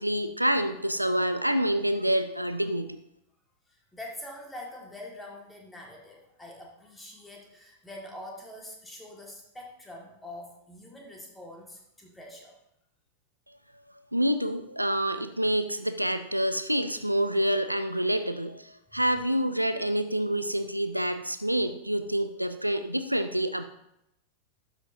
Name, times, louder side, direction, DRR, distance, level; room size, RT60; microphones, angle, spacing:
voice 1, 0.0-3.0 14.1-23.6, right 1 dB, 90° right, 10 dB, 0.5 m, -27 dB
voice 2, 3.7-12.6 18.9-19.0, left 1 dB, 10° left, -1 dB, 1.8 m, -44 dB
12.0 x 6.0 x 2.7 m, 0.80 s
figure-of-eight pair, 90°, 0 cm